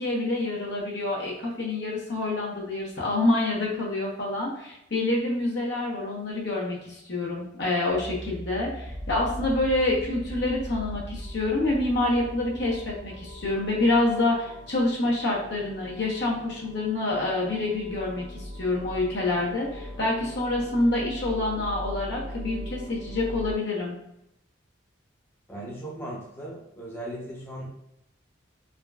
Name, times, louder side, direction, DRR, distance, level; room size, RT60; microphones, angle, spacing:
voice 1, 0.0-24.0, left 2 dB, 60° left, -3 dB, 0.8 m, -27 dB
Piano, 7.9-13.5, equal, 80° left, 1.2 m, -42 dB
sound 1, 8.8-23.5, equal, 70° right, 0.9 m, -40 dB
voice 2, 25.5-27.7, right 1 dB, 10° left, -7 dB, 0.7 m, -37 dB
3.7 x 2.2 x 2.2 m, 0.82 s
head